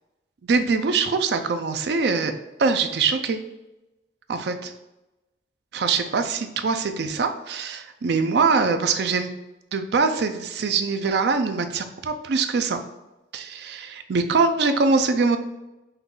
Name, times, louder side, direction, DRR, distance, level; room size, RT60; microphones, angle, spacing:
voice 1, 0.5-2.3 2.6-3.4 4.3-4.7 5.7-9.3 9.7-12.8 13.3-15.4, right 4 dB, 65° right, 8 dB, 0.4 m, -23 dB
5.5 x 2.3 x 3.8 m, 0.97 s
head